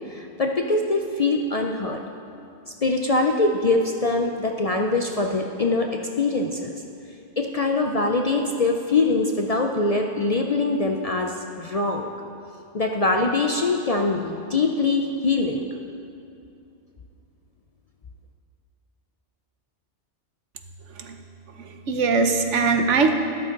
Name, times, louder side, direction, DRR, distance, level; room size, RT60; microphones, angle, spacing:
voice 1, 0.1-2.0 2.8-5.9 6.2-6.8 7.4-12.1 12.7-15.7, left 3 dB, 45° left, 2 dB, 0.5 m, -23 dB
voice 2, 21.6-23.1, right 4 dB, 80° right, 5 dB, 1.2 m, -21 dB
13.0 x 11.5 x 3.8 m, 2.6 s
omnidirectional pair, 1.2 m